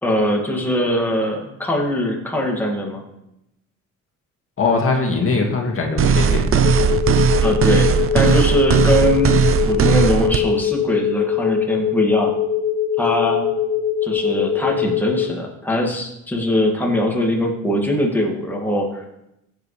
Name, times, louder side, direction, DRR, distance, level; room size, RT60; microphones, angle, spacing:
voice 1, 0.0-3.0 7.4-12.3 13.0-13.5 14.0-19.0, equal, 5° left, -1 dB, 2.2 m, -21 dB
voice 2, 4.6-6.7, left 4 dB, 45° left, 1 dB, 2.1 m, -21 dB
sound 1, 6.0-10.4, right 6 dB, 45° right, 0.7 m, -17 dB
sound 2, 6.6-15.3, left 8 dB, 30° left, 0.6 m, -22 dB
15.5 x 8.3 x 3.3 m, 0.86 s
cardioid pair, 90°, 30 cm